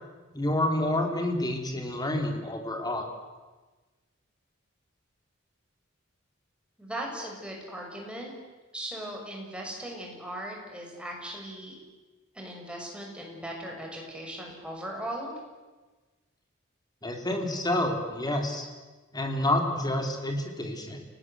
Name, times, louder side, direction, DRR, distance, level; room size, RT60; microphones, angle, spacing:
voice 1, 0.3-3.1 17.0-18.7 19.1-21.0, left 1 dB, 20° left, 4 dB, 3.5 m, -28 dB
voice 2, 6.8-8.3 8.7-11.8 12.3-15.3, right 1 dB, 5° right, -1 dB, 6.4 m, -38 dB
29.5 x 19.0 x 8.1 m, 1.2 s
head